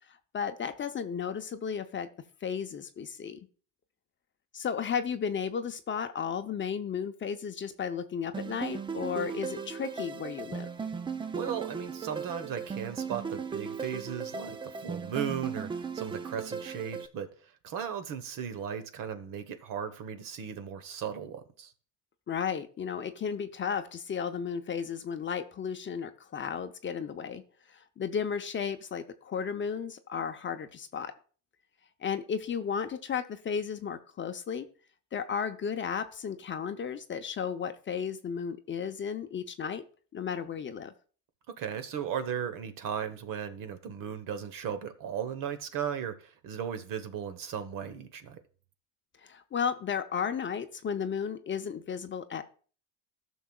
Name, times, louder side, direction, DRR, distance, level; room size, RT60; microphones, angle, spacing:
voice 1, 0.1-2.1 2.4-3.4 4.5-10.7 22.3-27.4 27.7-31.1 32.0-34.7 35.1-39.8 40.1-40.9 49.2-52.4, left 7 dB, 30° left, 8 dB, 0.7 m, -34 dB
sound 1, 8.3-17.1, right 6 dB, 15° right, 0.3 m, -37 dB
voice 2, 11.3-21.7 41.5-48.4, right 8 dB, 55° right, 10 dB, 1.2 m, -36 dB
14.0 x 6.2 x 2.3 m, 0.40 s
supercardioid pair, 105°, 40 cm